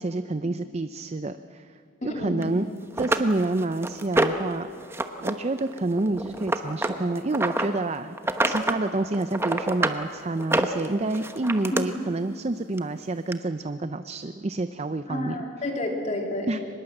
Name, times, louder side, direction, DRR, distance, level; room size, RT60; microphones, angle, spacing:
voice 1, 0.0-2.7 3.0-4.7 5.2-8.2 8.4-15.4 16.5-16.6, right 2 dB, 30° right, 10 dB, 0.5 m, -28 dB
voice 2, 2.0-2.4 8.4-8.5 11.7-11.8 15.1-16.5, left 1 dB, 35° left, 1 dB, 3.2 m, -30 dB
sound 1, 2.4-2.5 3.0-4.5 4.9-5.3 5.6-7.7 8.2-8.8 9.1-10.0 10.4-11.8 12.8-12.9 13.3-13.4, right 2 dB, 10° right, 1.0 m, -26 dB
24.5 x 21.0 x 7.8 m, 2.4 s
head